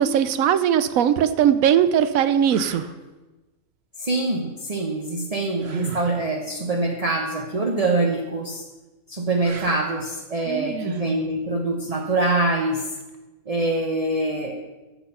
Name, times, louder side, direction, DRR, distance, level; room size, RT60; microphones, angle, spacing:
voice 1, 0.0-2.8 10.5-11.1, right 9 dB, 85° right, 13 dB, 1.1 m, -20 dB
sound 1, 0.9-1.1 1.8-1.9 2.5-3.0 5.6-6.1 9.4-10.0 13.0-13.2, right 7 dB, 55° right, 1.0 m, -35 dB
voice 2, 4.0-8.6 9.1-12.8 13.5-14.6, right 2 dB, 30° right, 1 dB, 0.9 m, -24 dB
14.0 x 6.1 x 5.6 m, 1.1 s
omnidirectional pair, 1.4 m